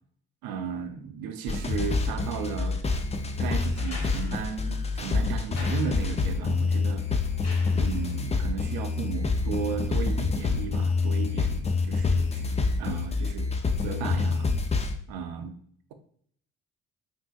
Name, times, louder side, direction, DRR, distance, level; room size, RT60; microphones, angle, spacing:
voice 1, 0.4-2.8 3.4-7.0 7.7-13.5 13.8-14.5 15.1-15.5, right 7 dB, 65° right, 8 dB, 0.6 m, -35 dB
sound 1, 1.5-15.0, left 4 dB, 20° left, 0.4 m, -27 dB
sound 2, 3.7-8.4 9.9-10.0, left 2 dB, 40° left, 1.1 m, -46 dB
3.6 x 2.6 x 2.3 m, 0.62 s
hypercardioid pair, 50°, 38 cm